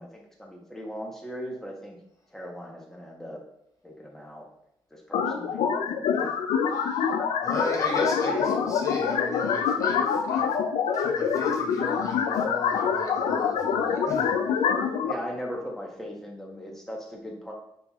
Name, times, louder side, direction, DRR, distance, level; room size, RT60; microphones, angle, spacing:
voice 1, 0.0-2.0 2.3-3.4 3.8-4.5 4.9-5.6 5.9-6.4 7.9-8.7 15.0-17.5, equal, 5° left, -1 dB, 1.0 m, -38 dB
sound 1, 5.1-15.1, left 7 dB, 85° left, 0.4 m, -25 dB
voice 2, 6.7-7.1 7.4-10.6 10.9-14.7, left 2 dB, 35° left, -1 dB, 0.8 m, -36 dB
5.6 x 2.8 x 2.4 m, 0.77 s
cardioid pair, 65°, 10 cm